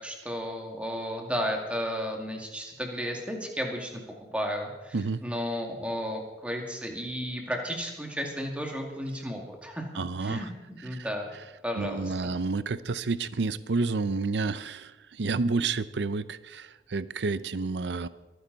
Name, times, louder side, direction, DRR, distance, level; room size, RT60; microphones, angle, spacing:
voice 1, 0.0-4.0 4.3-9.8 10.2-11.3 11.6-12.3, equal, 5° right, 1 dB, 2.2 m, -33 dB
voice 2, 10.0-10.4 10.9-11.1 11.8-14.9 15.2-18.1, right 3 dB, 75° right, 15 dB, 0.6 m, -30 dB
23.0 x 10.0 x 4.1 m, 1.1 s
head